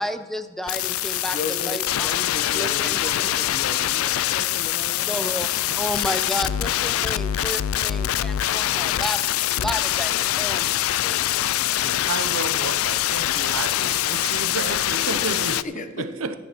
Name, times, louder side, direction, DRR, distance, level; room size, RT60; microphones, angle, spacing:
voice 1, 0.0-2.3 2.6-3.0 5.1-11.5, equal, ahead, 0.5 m, -32 dB
sound 1, 0.7-15.6, left 13 dB, 90° left, 0.4 m, -24 dB
voice 2, 1.3-5.2 15.1-16.1, left 3 dB, 40° left, 0.9 m, -35 dB
voice 3, 11.8-15.6 16.0-16.3, right 4 dB, 85° right, 0.8 m, -31 dB
14.5 x 9.6 x 4.5 m
head